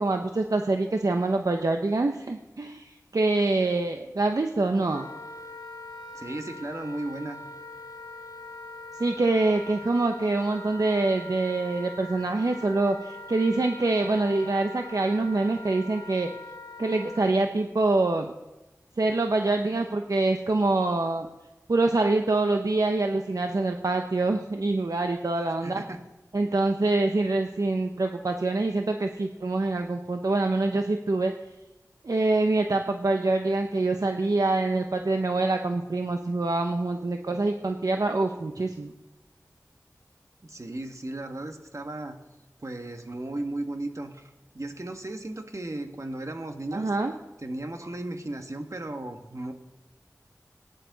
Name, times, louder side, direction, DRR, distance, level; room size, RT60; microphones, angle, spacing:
voice 1, 0.0-5.1 9.0-16.3 16.8-18.3 19.0-21.3 21.7-25.8 26.3-31.3 32.0-38.9 46.7-47.1, right 2 dB, 70° right, 4 dB, 0.8 m, -25 dB
Wind instrument woodwind instrument, 4.9-17.3, left 1 dB, 85° left, 1.0 m, -42 dB
voice 2, 6.1-7.4 25.6-26.0 40.4-42.2 42.6-46.9 47.4-49.5, right 2 dB, 55° right, 6 dB, 1.4 m, -35 dB
18.0 x 10.0 x 4.0 m, 1.0 s
wide cardioid pair, 40°, 6 cm